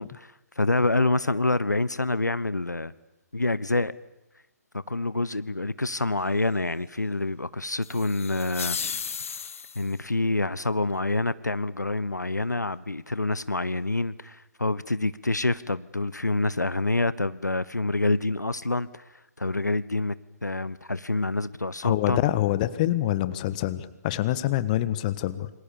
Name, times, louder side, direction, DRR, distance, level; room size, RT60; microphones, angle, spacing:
voice 1, 0.0-2.9 3.3-3.9 4.7-8.8 9.8-19.0 19.4-20.1 20.4-22.2, left 2 dB, 80° left, 18 dB, 1.1 m, -27 dB
sound 1, 7.8-10.0, left 6 dB, 50° left, 1.4 m, -34 dB
voice 2, 21.8-25.5, left 14 dB, 25° left, 15 dB, 1.4 m, -26 dB
28.0 x 25.5 x 7.0 m, 0.98 s
figure-of-eight pair, 135°, 9 cm